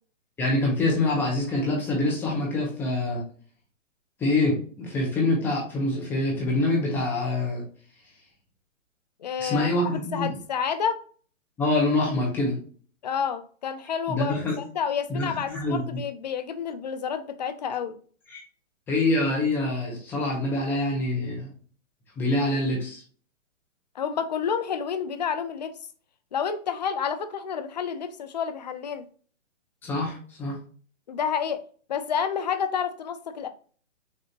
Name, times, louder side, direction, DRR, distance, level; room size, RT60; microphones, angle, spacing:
voice 1, 0.4-3.2 4.2-7.6 9.4-10.3 11.6-12.6 14.1-14.6 15.1-15.8 18.3-18.4 18.9-21.5 22.2-23.0 29.8-30.6, left 2 dB, 5° left, -2 dB, 0.8 m, -25 dB
voice 2, 9.2-11.0 13.0-18.0 23.9-25.7 26.3-29.0 31.1-31.6 31.9-33.5, left 7 dB, 35° left, 10 dB, 0.5 m, -29 dB
6.6 x 2.7 x 2.8 m, 0.43 s
hypercardioid pair, 155°, 39 cm